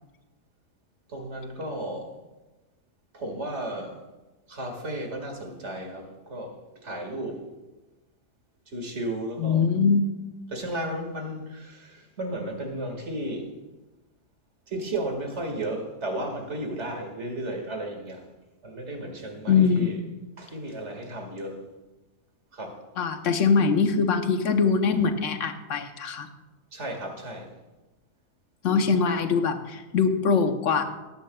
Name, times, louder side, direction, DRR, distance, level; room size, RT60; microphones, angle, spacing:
voice 1, 1.1-2.1 3.1-3.9 4.5-6.5 6.8-7.4 8.7-9.7 10.5-13.4 14.7-18.2 18.6-20.0 20.4-21.6 22.5-22.8 26.7-27.5, right 1 dB, 45° right, 3 dB, 2.2 m, -34 dB
voice 2, 9.4-10.1 19.5-20.1 23.0-26.3 28.6-30.8, left 5 dB, 60° left, 8 dB, 1.1 m, -23 dB
19.0 x 10.5 x 2.3 m, 1.1 s
omnidirectional pair, 1.6 m